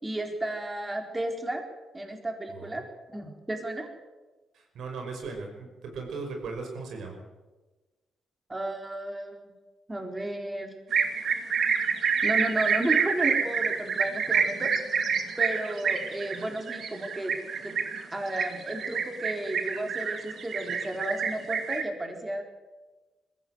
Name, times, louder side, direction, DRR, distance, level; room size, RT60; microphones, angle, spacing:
voice 1, 0.0-1.6 1.9-2.8 3.1-3.9 8.5-9.4 9.9-10.7 12.2-14.7 15.4-17.3 17.6-17.8 18.1-22.4, right 1 dB, 15° right, 3 dB, 4.2 m, -33 dB
voice 2, 2.5-2.8 4.5-7.2, right 4 dB, 75° right, 2 dB, 5.9 m, -38 dB
sound 1, 10.9-21.8, right 6 dB, 60° right, 2.3 m, -27 dB
21.0 x 15.5 x 8.1 m, 1.2 s
cardioid pair, 90°, 0 cm